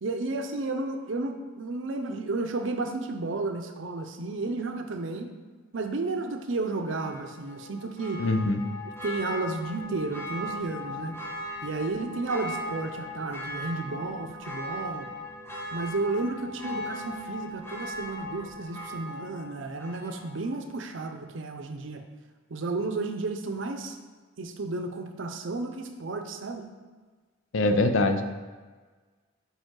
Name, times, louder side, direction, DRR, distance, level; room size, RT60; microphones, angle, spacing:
voice 1, 0.0-5.3 5.7-8.2 9.0-11.2 11.6-15.1 15.7-22.0 22.5-24.0 24.4-26.7, right 3 dB, 70° right, 6 dB, 0.6 m, -32 dB
Church bell, 6.8-20.5 20.9-21.0, left 1 dB, 10° left, 0.9 m, -39 dB
voice 2, 8.2-8.6 27.5-28.2, left 2 dB, 80° left, 7 dB, 0.5 m, -23 dB
5.2 x 4.9 x 3.8 m, 1.4 s
head